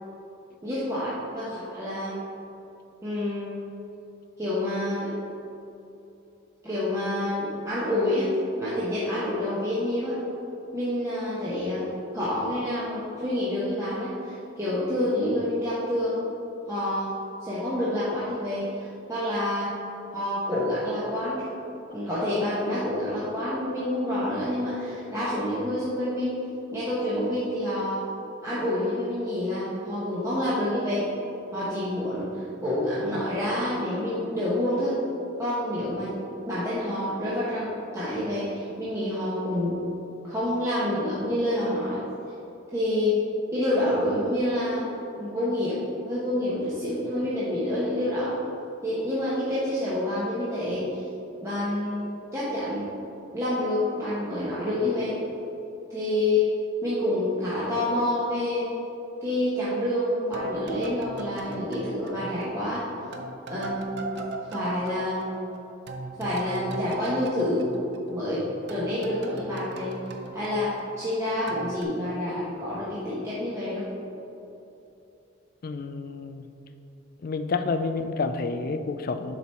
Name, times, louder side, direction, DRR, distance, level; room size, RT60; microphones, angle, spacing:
voice 1, 0.6-2.3 3.0-3.7 4.4-5.1 6.6-8.3 8.6-10.2 10.7-11.8 12.1-16.2 16.7-17.1 17.4-19.7 20.1-21.5 21.9-26.3 26.7-28.1 28.4-31.1 31.5-35.0 35.4-36.1 36.4-37.7 37.9-39.8 40.2-42.0 42.7-43.2 43.5-44.8 45.2-45.8 46.0-48.3 48.8-51.0 51.4-52.9 53.3-55.1 55.9-56.5 56.8-58.7 59.2-62.8 63.5-64.2 64.5-65.2 66.2-67.7 68.1-68.4 68.7-70.0 70.3-73.8, left 1 dB, 15° right, -10 dB, 1.0 m, -28 dB
sound 1, 60.3-62.8 63.1-68.4 68.7-71.1 71.5-71.8, right 2 dB, 55° right, 0.5 m, -38 dB
voice 2, 75.6-76.5 77.2-79.3, left 4 dB, 45° left, 8 dB, 0.3 m, -29 dB
6.8 x 4.6 x 4.3 m, 2.9 s
head